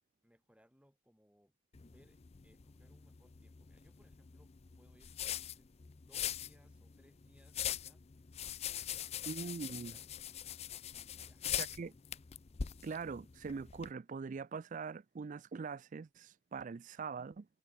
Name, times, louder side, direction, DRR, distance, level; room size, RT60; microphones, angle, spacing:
voice 1, 0.2-5.7 6.0-8.3 8.6-10.1 10.9-11.4 11.7-12.0, equal, 5° right, 5.3 m, -69 dB
sound 1, 1.7-13.9, left 10 dB, 30° left, 0.4 m, -43 dB
voice 2, 9.3-9.9 11.6-11.9 12.8-17.5, right 5 dB, 40° right, 0.4 m, -42 dB
head